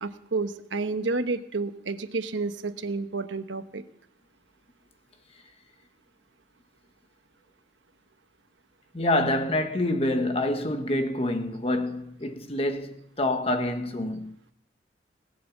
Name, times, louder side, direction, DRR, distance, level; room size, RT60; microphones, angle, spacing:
voice 1, 0.0-3.8, right 3 dB, 80° right, 1.0 m, -30 dB
voice 2, 8.9-14.3, left 1 dB, 30° left, 1.2 m, -27 dB
20.0 x 7.6 x 7.1 m
head